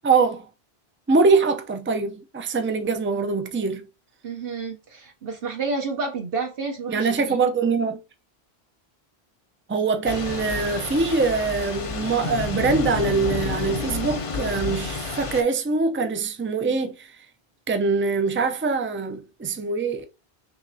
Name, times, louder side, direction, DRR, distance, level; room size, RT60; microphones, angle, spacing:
voice 1, 0.0-0.5 1.1-3.9 6.9-8.0 9.7-17.3 17.7-20.1, right 4 dB, 20° right, 0.4 m, -23 dB
voice 2, 4.2-7.4, right 4 dB, 65° right, 1.0 m, -30 dB
Thunder / Rain, 10.0-15.4, left 4 dB, 40° left, 0.5 m, -30 dB
5.7 x 2.9 x 2.7 m
omnidirectional pair, 1.1 m